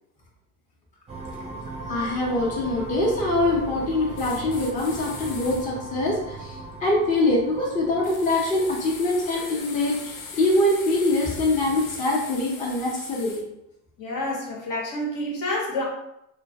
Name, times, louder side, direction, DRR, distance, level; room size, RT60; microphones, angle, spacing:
sound 1, 1.1-11.6, right 2 dB, 15° right, 0.5 m, -39 dB
voice 1, 1.9-13.4, left 2 dB, 20° left, -4 dB, 0.7 m, -24 dB
sound 2, 4.1-5.7 8.0-13.4, left 5 dB, 85° left, 0.5 m, -40 dB
voice 2, 14.0-15.8, left 1 dB, 50° left, -1 dB, 0.9 m, -28 dB
2.2 x 2.1 x 2.7 m, 0.81 s
hypercardioid pair, 85°, 40 cm